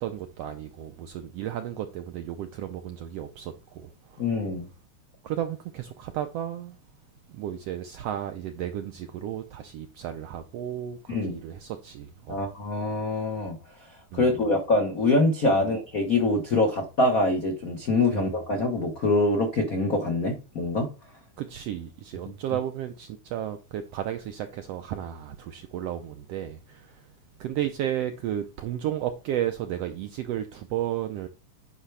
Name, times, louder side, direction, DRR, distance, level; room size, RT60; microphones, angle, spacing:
voice 1, 0.0-4.3 5.2-6.8 7.3-12.4 14.1-14.3 15.5-15.7 18.1-18.3 21.4-27.0 27.4-31.3, right 11 dB, 80° right, 1.4 m, -33 dB
voice 2, 4.2-4.6 11.1-11.4 12.3-13.6 14.1-20.9, left 2 dB, 65° left, 0.8 m, -24 dB
9.9 x 5.7 x 3.3 m
omnidirectional pair, 3.5 m